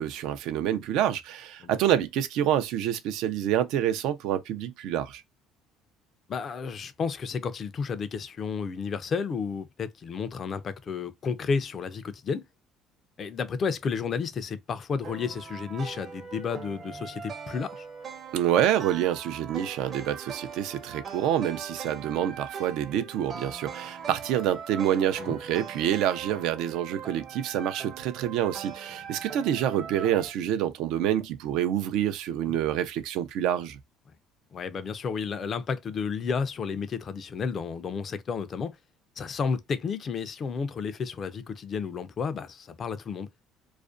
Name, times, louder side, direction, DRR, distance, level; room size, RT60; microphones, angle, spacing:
voice 1, 0.0-5.2 18.3-33.8, right 10 dB, 75° right, 0.5 m, -27 dB
voice 2, 6.3-12.4 13.2-17.9 25.2-25.3 29.2-29.3 32.5-32.6 34.5-38.8 39.2-43.3, left 5 dB, 35° left, 0.4 m, -32 dB
sound 1, 15.0-30.3, right 6 dB, 40° right, 0.7 m, -41 dB
2.4 x 2.1 x 2.4 m
cardioid pair, 125°, 0 cm